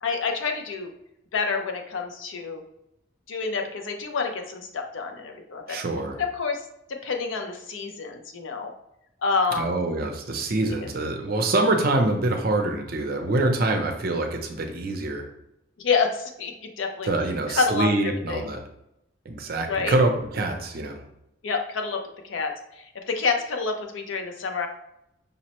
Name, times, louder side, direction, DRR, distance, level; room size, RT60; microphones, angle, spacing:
voice 1, 0.0-0.9 1.3-2.6 3.3-5.8 6.2-6.6 6.9-8.7 9.2-9.7 10.7-10.9 15.8-17.1 17.5-17.9 18.3-18.5 19.7-19.9 21.4-24.7, left 4 dB, 85° left, 4 dB, 0.6 m, -28 dB
voice 2, 5.7-6.2 9.6-15.3 17.1-18.6 19.3-21.0, right 2 dB, 50° right, 4 dB, 0.5 m, -25 dB
5.2 x 2.1 x 2.9 m, 0.82 s
head